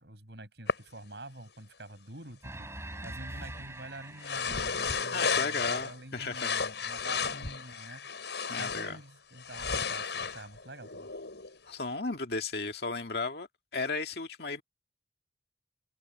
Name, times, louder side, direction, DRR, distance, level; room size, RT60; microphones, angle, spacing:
voice 1, 0.0-11.1, right 1 dB, 70° right, 6.8 m, -47 dB
Cloth Rubbing, 0.7-0.8 4.2-6.0 6.3-9.0 9.4-11.6, left 5 dB, 80° left, 5.8 m, -33 dB
sound 1, 2.4-5.4, right 1 dB, 15° right, 6.4 m, -44 dB
voice 2, 5.1-6.5 8.5-9.0 11.6-13.5 13.7-14.6, left 3 dB, 65° left, 2.0 m, -34 dB
open air
head